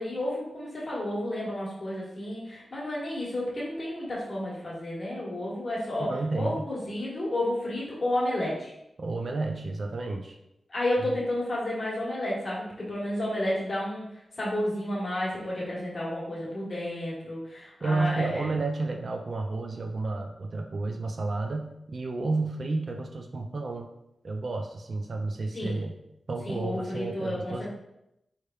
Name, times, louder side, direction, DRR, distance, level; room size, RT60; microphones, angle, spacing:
voice 1, 0.0-8.7 10.7-14.1 14.4-18.5 25.5-25.8 26.4-27.7, left 1 dB, 35° left, -6 dB, 1.2 m, -31 dB
voice 2, 6.1-6.7 9.0-10.4 17.8-23.9 24.2-26.0 26.3-27.7, right 3 dB, 45° right, 3 dB, 0.3 m, -31 dB
4.3 x 3.2 x 2.2 m, 0.84 s
wide cardioid pair, 170°, 0 cm